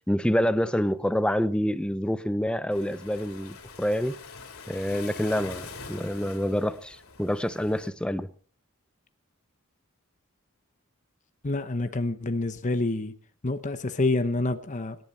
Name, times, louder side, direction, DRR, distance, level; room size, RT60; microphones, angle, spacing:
voice 1, 0.1-4.2 4.7-8.3, equal, 5° left, 0.6 m, -27 dB
Waves surf, 2.7-7.9, left 4 dB, 90° left, 3.4 m, -44 dB
voice 2, 11.4-13.1 13.4-15.0, left 2 dB, 35° left, 0.9 m, -27 dB
25.5 x 11.0 x 4.2 m
head